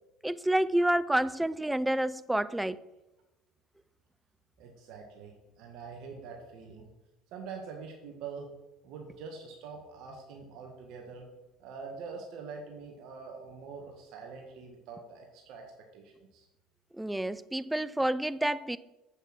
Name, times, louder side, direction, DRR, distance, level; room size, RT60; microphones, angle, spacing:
voice 1, 0.2-2.8 16.9-18.8, right 1 dB, 5° right, 0.4 m, -29 dB
voice 2, 4.6-6.9 7.3-8.5 8.8-11.3 11.6-16.5, right 5 dB, 65° right, 1.7 m, -45 dB
8.2 x 6.6 x 6.1 m
supercardioid pair, 100°, 0 cm